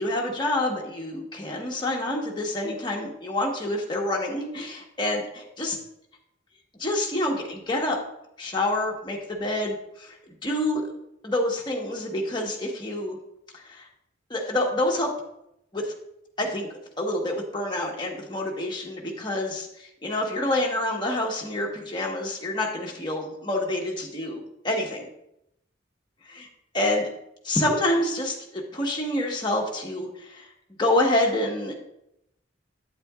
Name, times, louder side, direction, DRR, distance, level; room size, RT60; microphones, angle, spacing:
voice 1, 0.0-5.8 6.8-8.0 8.4-10.2 10.4-10.9 11.2-13.2 13.5-13.8 14.3-15.1 15.7-15.9 16.4-25.1 26.3-26.5 26.7-27.1 27.4-30.5 30.8-31.8, left 1 dB, 25° left, -1 dB, 1.4 m, -27 dB
8.9 x 8.6 x 2.5 m, 0.80 s
head